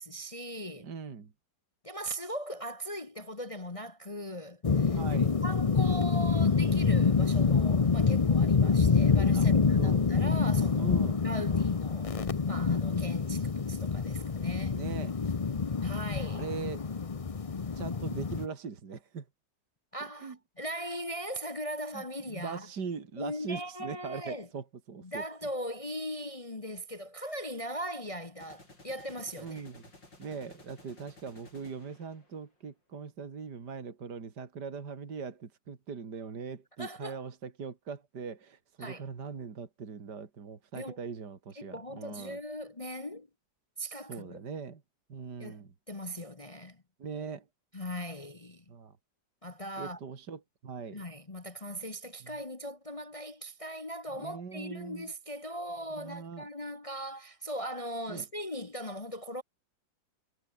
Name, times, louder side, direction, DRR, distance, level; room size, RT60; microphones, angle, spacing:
voice 1, 0.0-0.9 1.8-10.9 11.2-14.8 15.8-16.5 19.9-22.7 23.2-24.5 25.0-29.6 36.8-37.2 38.8-39.0 40.7-41.0 41.6-43.3 43.8-44.4 45.4-46.8 47.7-48.6 49.4-50.0 50.9-59.4, equal, 25° left, 1.0 m, -39 dB
voice 2, 0.8-1.3 4.9-5.4 9.3-10.1 10.8-11.2 14.7-15.2 16.3-16.9 17.7-19.3 20.2-20.4 21.9-25.2 29.4-29.8 30.2-42.4 44.1-44.8 45.1-45.7 47.0-47.5 48.7-48.9 49.8-51.0 52.2-52.4 54.1-55.1 55.9-56.5 58.1-58.2, right 5 dB, 65° right, 2.9 m, -41 dB
sound 1, 4.6-18.5, left 5 dB, 60° left, 0.3 m, -26 dB
sound 2, 23.6-23.8 28.4-32.6, left 2 dB, 75° left, 8.4 m, -56 dB
omnidirectional pair, 2.0 m